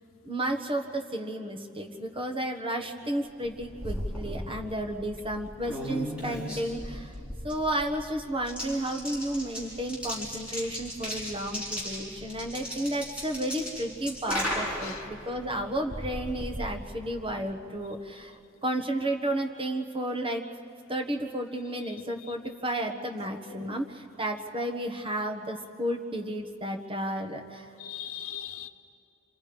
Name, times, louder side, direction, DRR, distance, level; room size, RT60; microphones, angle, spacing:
voice 1, 0.2-7.1 7.4-20.4 20.9-27.7, right 1 dB, 25° right, 1.4 m, -32 dB
sound 1, 3.4-17.4, equal, 5° right, 6.8 m, -37 dB
voice 2, 23.2-23.8 27.8-28.7, left 9 dB, 85° left, 0.9 m, -40 dB
27.5 x 26.0 x 5.2 m
head